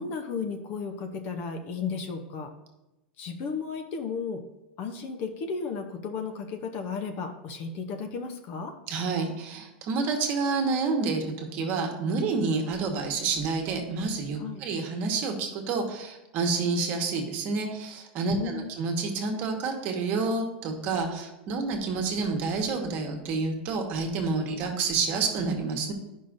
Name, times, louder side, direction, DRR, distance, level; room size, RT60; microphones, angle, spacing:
voice 1, 0.0-2.5 3.2-4.4 4.8-8.7 14.4-14.6 18.3-18.7, left 5 dB, 40° left, 5 dB, 0.7 m, -34 dB
voice 2, 8.9-25.9, right 4 dB, 40° right, 3 dB, 1.2 m, -29 dB
11.0 x 5.5 x 2.6 m, 0.98 s
supercardioid pair, 155°, 5 cm